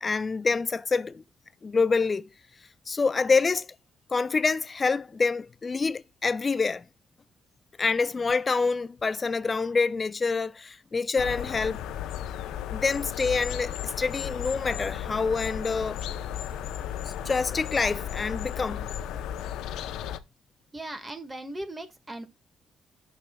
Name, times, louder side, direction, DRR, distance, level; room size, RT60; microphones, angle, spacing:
voice 1, 0.0-1.2 1.6-2.3 2.9-3.7 4.1-6.8 7.8-11.8 12.7-16.0 17.0-18.9, left 4 dB, 30° left, 0.4 m, -26 dB
sound 1, 11.2-20.2, left 10 dB, 90° left, 0.6 m, -34 dB
voice 2, 20.7-22.3, right 1 dB, 20° right, 1.6 m, -38 dB
14.0 x 6.2 x 2.2 m
cardioid pair, 90°, 0 cm